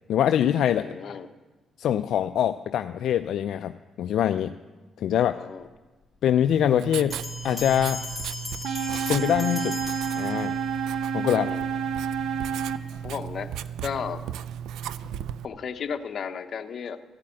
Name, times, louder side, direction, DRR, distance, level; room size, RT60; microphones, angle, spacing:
voice 1, 0.1-1.2 1.8-3.7 4.0-4.5 5.0-5.5 6.2-7.2 7.4-8.0 9.1-9.8 10.1-10.5 11.1-11.5, left 10 dB, 75° left, 10 dB, 0.3 m, -24 dB
voice 2, 0.8-1.3 5.2-5.7 11.4-11.7 13.0-13.5 13.8-14.2 15.4-17.0, left 6 dB, 55° left, 7 dB, 0.9 m, -34 dB
Writing, 6.5-15.4, right 9 dB, 85° right, 0.4 m, -36 dB
sound 1, 7.1-10.9, left 3 dB, 20° left, 3.0 m, -38 dB
sound 2, 8.6-12.8, right 6 dB, 65° right, 0.9 m, -29 dB
14.5 x 7.5 x 8.8 m, 1.3 s
cardioid pair, 90°, 0 cm